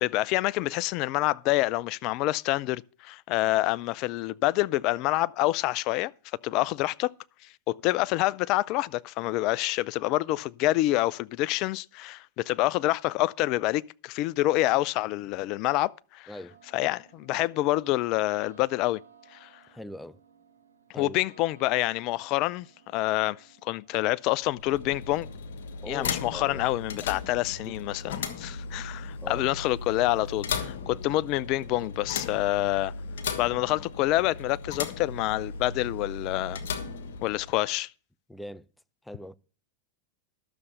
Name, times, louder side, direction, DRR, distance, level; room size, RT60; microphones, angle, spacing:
voice 1, 0.0-6.1 6.4-7.1 7.7-16.3 16.7-19.0 19.3-19.5 20.9-22.7 22.9-25.3 25.9-32.9 33.4-36.6 37.2-37.9, left 17 dB, 50° left, 0.5 m, -27 dB
voice 2, 16.3-16.6 19.7-20.2 20.9-21.2 25.8-26.6 27.6-27.8 29.2-29.5 30.8-30.9 38.3-38.7 39.0-39.4, left 1 dB, 5° left, 0.6 m, -41 dB
sound 1, 16.5-30.4, right 7 dB, 90° right, 1.7 m, -60 dB
sound 2, 24.4-37.7, left 5 dB, 70° left, 1.4 m, -36 dB
12.0 x 6.9 x 6.6 m
hypercardioid pair, 100°, 0 cm